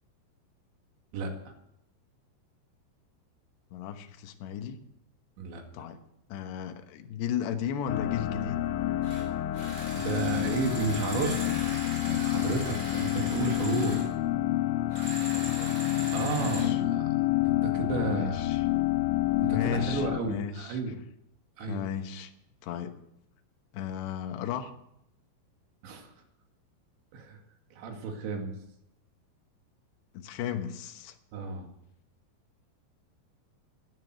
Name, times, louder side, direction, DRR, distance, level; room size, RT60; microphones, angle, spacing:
voice 1, 1.1-1.5 5.4-5.6 9.9-11.7 12.0-14.1 16.1-18.5 19.4-21.0 21.6-21.8 25.8-26.1 27.1-27.4 27.7-28.5 31.3-31.7, right 4 dB, 80° right, 3 dB, 4.4 m, -32 dB
voice 2, 3.7-4.8 5.7-6.0 6.3-8.6 15.3-15.8 16.3-16.8 18.1-18.7 19.5-20.8 21.7-22.3 22.6-22.9 23.7-24.7 30.1-31.1, left 8 dB, 75° left, 6 dB, 3.2 m, -35 dB
sound 1, 7.9-20.2, left 15 dB, 90° left, 3.2 m, -29 dB
sound 2, 9.0-9.2 9.5-14.1 14.9-16.7, right 1 dB, 20° right, 4.4 m, -40 dB
13.0 x 11.0 x 7.9 m, 0.78 s
omnidirectional pair, 5.2 m